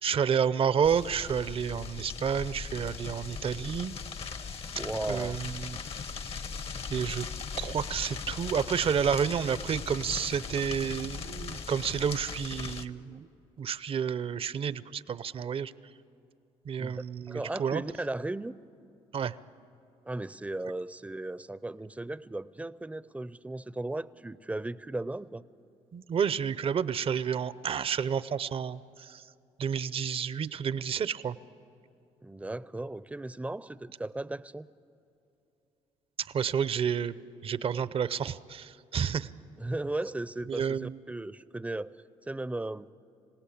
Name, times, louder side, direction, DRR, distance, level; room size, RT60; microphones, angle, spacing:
voice 1, 0.0-4.0 5.1-5.8 6.9-7.3 7.6-13.3 13.6-15.7 16.7-17.8 19.1-19.3 25.9-29.2 29.6-31.4 36.3-39.3 40.5-41.0, right 7 dB, 50° right, 17 dB, 0.7 m, -30 dB
sound 1, 0.8-12.9, left 5 dB, 50° left, 1.1 m, -39 dB
voice 2, 4.8-5.4 16.8-18.6 20.1-25.4 32.2-34.7 39.6-41.9 42.3-42.9, right 2 dB, 10° right, 17 dB, 0.6 m, -36 dB
26.5 x 17.0 x 8.6 m, 2.7 s
supercardioid pair, 70°, 13 cm